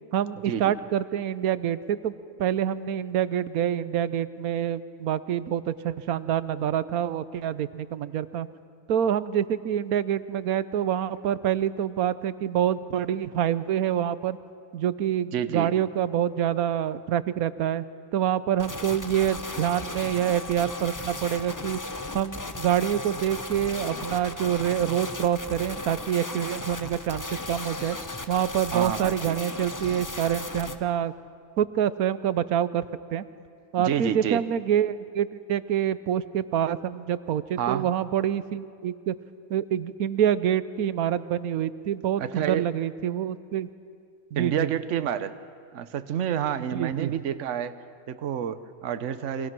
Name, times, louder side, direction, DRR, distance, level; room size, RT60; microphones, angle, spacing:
voice 1, 0.1-2.1 2.4-8.5 8.9-14.4 14.7-17.8 18.1-21.8 22.1-28.0 28.3-31.1 31.6-32.9 33.1-33.2 33.7-39.1 39.5-43.7 44.3-44.7 46.6-47.1, right 10 dB, 85° right, 15 dB, 1.2 m, -26 dB
voice 2, 15.3-15.7 28.7-29.4 33.8-34.4 37.6-37.9 42.2-42.7 44.4-45.4 45.7-47.7 48.1-49.5, right 9 dB, 60° right, 12 dB, 1.1 m, -29 dB
sound 1, 18.6-30.8, left 2 dB, 15° left, 0.7 m, -36 dB
29.5 x 23.5 x 6.1 m, 2.3 s
omnidirectional pair, 1.5 m